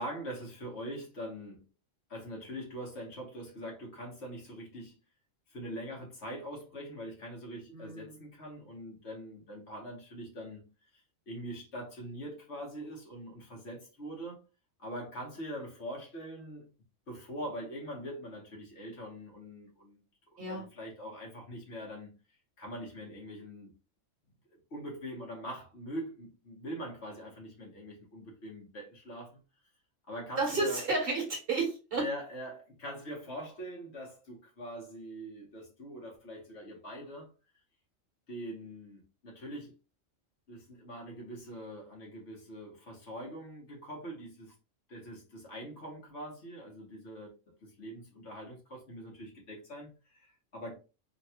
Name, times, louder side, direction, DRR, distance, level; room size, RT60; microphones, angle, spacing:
voice 1, 0.0-1.6 2.1-5.0 5.5-10.7 11.3-14.4 14.8-16.7 17.1-22.1 22.6-23.7 24.5-29.4 30.1-30.8 32.0-37.3 38.3-39.7 40.5-44.5 44.9-50.8, equal, 60° left, 1.4 m, -43 dB
voice 2, 7.7-8.1 20.4-20.7 30.4-32.0, right 3 dB, 50° right, 1.2 m, -32 dB
3.3 x 2.2 x 2.8 m
omnidirectional pair, 1.3 m